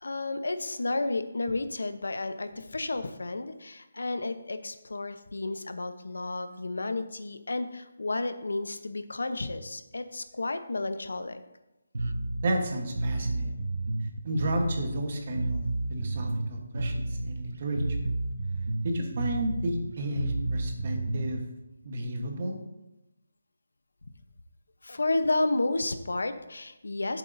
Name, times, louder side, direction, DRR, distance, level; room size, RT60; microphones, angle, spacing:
voice 1, 0.0-11.4 24.8-27.2, left 2 dB, 90° left, 10 dB, 0.8 m, -31 dB
Bass guitar, 11.9-21.4, right 2 dB, 80° right, 0.7 m, -31 dB
voice 2, 12.4-13.5 14.2-15.6 15.9-18.0 18.8-21.4 21.8-22.6, right 1 dB, 35° right, 3 dB, 1.2 m, -32 dB
12.5 x 7.4 x 2.7 m, 0.94 s
hypercardioid pair, 175°, 0 cm